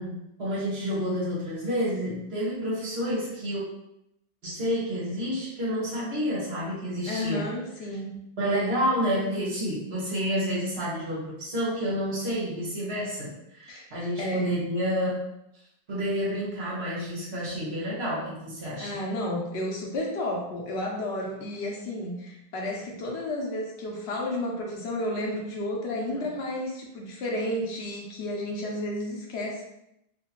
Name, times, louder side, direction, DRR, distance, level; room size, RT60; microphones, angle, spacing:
voice 1, 0.0-3.6 4.4-7.5 8.4-15.1 15.9-19.0, equal, 75° right, -7 dB, 1.6 m, -29 dB
voice 2, 7.1-8.2 13.7-13.8 14.2-14.6 18.8-29.6, left 1 dB, 90° left, -1 dB, 1.0 m, -32 dB
3.1 x 2.8 x 3.0 m, 0.83 s
omnidirectional pair, 1.1 m